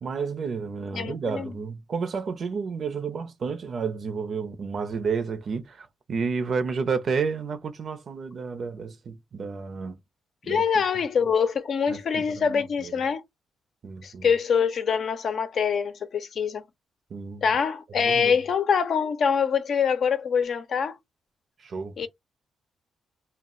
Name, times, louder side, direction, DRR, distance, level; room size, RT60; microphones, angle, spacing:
voice 1, 0.0-10.0 10.4-10.6 11.9-12.9 13.8-14.3 17.1-17.4 18.0-18.4 21.6-22.1, right 5 dB, 60° right, 0.5 m, -31 dB
voice 2, 0.9-1.5 10.5-13.2 14.0-16.6 17.4-21.0 22.0-22.1, left 6 dB, 65° left, 0.6 m, -24 dB
2.3 x 2.1 x 3.6 m
cardioid pair, 70°, 0 cm